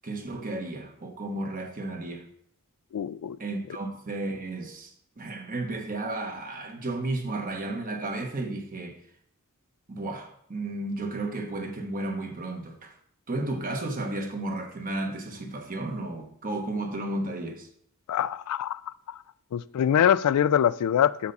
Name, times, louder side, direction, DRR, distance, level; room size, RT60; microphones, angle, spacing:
voice 1, 0.0-2.3 3.4-4.9 5.2-9.0 9.9-13.0 13.3-17.7, right 2 dB, 40° right, 1.1 m, -33 dB
voice 2, 2.9-3.4 18.1-18.8 19.5-21.3, left 9 dB, 85° left, 0.3 m, -23 dB
7.2 x 5.4 x 4.1 m
head